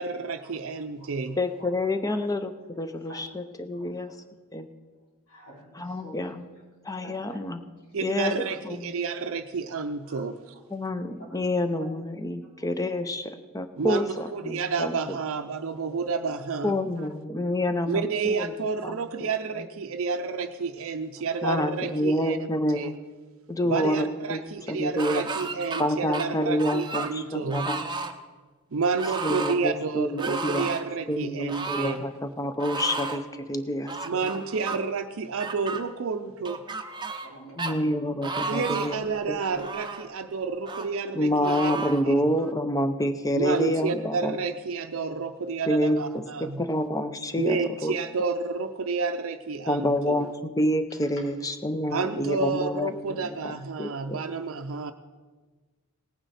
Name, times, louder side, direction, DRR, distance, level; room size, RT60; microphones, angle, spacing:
voice 1, 0.0-1.4 7.9-10.4 13.8-16.8 17.9-22.4 22.7-22.9 23.6-27.7 28.7-32.0 34.0-36.6 38.5-42.4 43.4-46.6 47.3-50.3 51.9-54.9, right 4 dB, 65° right, 6 dB, 0.5 m, -30 dB
voice 2, 1.4-4.1 4.5-4.7 5.8-6.5 6.8-7.6 8.0-8.9 10.7-15.0 16.6-18.5 18.8-19.3 21.4-22.9 23.5-24.4 24.7-25.3 25.8-27.9 29.2-30.7 31.1-34.0 34.2-34.3 37.6-39.0 39.3-39.4 41.1-44.4 45.7-48.0 49.7-53.4 53.8-54.2, left 1 dB, 15° left, 9 dB, 0.6 m, -28 dB
voice 3, 3.7-4.2 5.3-6.2 6.5-6.6 7.0-7.4 8.3-8.5 10.0-10.2 10.5-10.6 11.1-11.2 11.8-11.9 12.9-13.0 14.2-14.3 29.1-29.3 31.8-32.0 33.4-33.5 36.9-38.2 51.0-51.1, right 1 dB, 90° left, -4 dB, 4.1 m, -49 dB
sound 1, 25.0-25.8 26.1-27.1 27.5-28.1 29.0-29.6 30.2-30.9 31.5-32.0 32.6-33.2 33.9-34.8 35.4-35.8 36.4-37.3 37.6-37.7 38.2-39.0 39.5-40.1 40.7-40.9 41.4-42.0, right 4 dB, 20° right, 0.7 m, -33 dB
18.0 x 9.1 x 4.2 m, 1.4 s
head